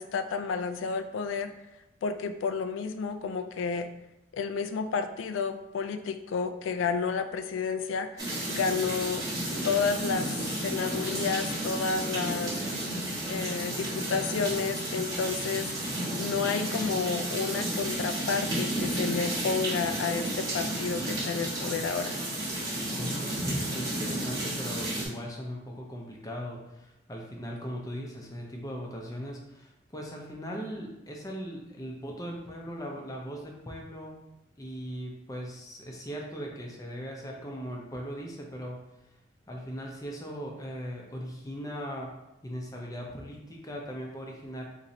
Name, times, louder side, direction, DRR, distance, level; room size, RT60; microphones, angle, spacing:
voice 1, 0.0-1.5 2.0-3.9 4.3-9.3 9.6-12.6 13.3-15.7 16.2-22.2, left 5 dB, 85° left, 8 dB, 0.3 m, -31 dB
sound 1, 8.2-25.1, right 1 dB, 20° right, 1.1 m, -32 dB
voice 2, 22.9-34.1 34.6-38.8 39.5-42.1 42.4-44.7, equal, 20° left, 0 dB, 0.5 m, -39 dB
4.0 x 3.0 x 2.7 m, 0.93 s
head